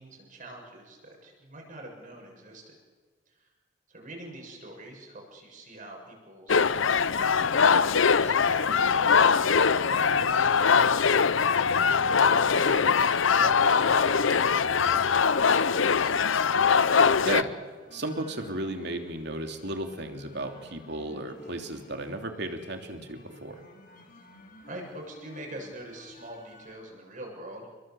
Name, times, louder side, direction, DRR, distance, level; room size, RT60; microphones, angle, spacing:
voice 1, 0.0-2.8 3.4-3.5 3.9-11.2 12.5-16.5 24.6-27.7, right 1 dB, 45° right, 1 dB, 7.2 m, -44 dB
sound 1, 6.5-17.4, left 6 dB, 75° left, 0.7 m, -22 dB
sound 2, 8.9-26.8, left 1 dB, 50° left, 7.7 m, -54 dB
voice 2, 17.2-17.5 17.9-23.6, right 2 dB, 60° right, 5 dB, 3.0 m, -34 dB
28.5 x 22.5 x 7.8 m, 1.4 s
head